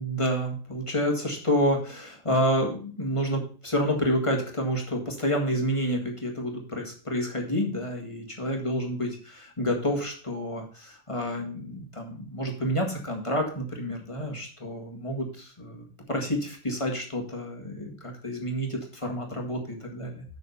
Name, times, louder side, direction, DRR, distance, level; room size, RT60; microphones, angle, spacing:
voice 1, 0.0-20.2, equal, 25° left, 1 dB, 1.9 m, -29 dB
7.0 x 6.2 x 5.5 m, 0.41 s
omnidirectional pair, 1.2 m